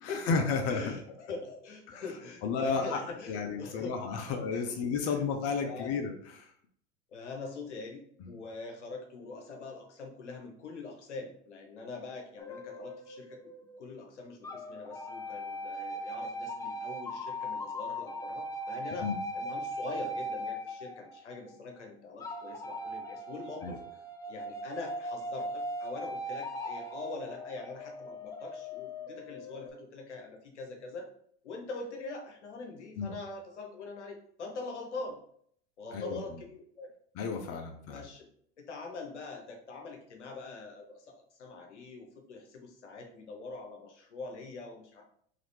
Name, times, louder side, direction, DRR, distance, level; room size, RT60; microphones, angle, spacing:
voice 1, 0.0-0.8 1.9-2.0 2.4-3.0 3.3-6.5 19.0-19.2 23.6-23.8 33.0-33.1 35.9-36.2 37.2-38.0, left 5 dB, 45° left, 4 dB, 0.7 m, -32 dB
voice 2, 0.7-5.2 5.6-6.0 7.1-13.4 13.8-23.8 24.3-31.1 31.4-35.2 35.8-36.9 37.5-37.6 37.9-38.3 38.6-45.0, left 3 dB, 90° left, 2 dB, 0.9 m, -43 dB
sound 1, 12.4-13.9 14.4-21.5 22.2-29.7, equal, 10° left, 0.4 m, -39 dB
3.9 x 2.8 x 3.2 m, 0.64 s
hypercardioid pair, 90°, 34 cm